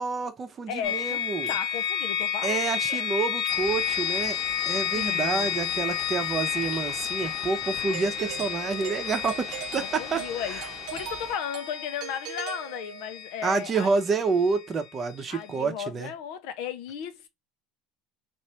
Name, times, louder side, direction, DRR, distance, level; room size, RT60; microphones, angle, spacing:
voice 1, 0.0-1.5 2.4-4.4 4.7-10.2 13.4-16.1, right 4 dB, 30° right, 0.8 m, -28 dB
voice 2, 0.7-3.0 4.9-5.9 6.2-6.7 7.9-8.1 9.8-13.9 15.3-17.3, left 8 dB, 70° left, 0.8 m, -36 dB
sound 1, 0.8-14.6, left 9 dB, 55° left, 1.3 m, -31 dB
Ocean / Boat Water vehicle, 3.5-11.3, left 1 dB, 5° left, 1.1 m, -45 dB
Doorbell, 7.9-13.4, right 12 dB, 65° right, 0.6 m, -40 dB
3.1 x 2.6 x 4.3 m
cardioid pair, 130°, 0 cm